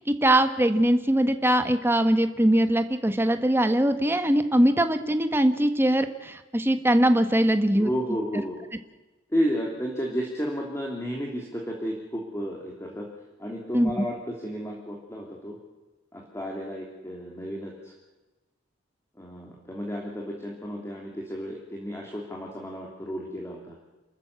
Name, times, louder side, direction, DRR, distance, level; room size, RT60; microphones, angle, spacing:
voice 1, 0.0-7.9 13.7-14.1, right 1 dB, 10° right, 8 dB, 1.4 m, -22 dB
voice 2, 7.7-8.6 9.3-13.1 13.4-14.2 14.4-15.6 16.1-17.9 19.2-23.7, equal, 15° left, -1 dB, 3.0 m, -32 dB
29.0 x 13.5 x 8.3 m, 1.1 s
head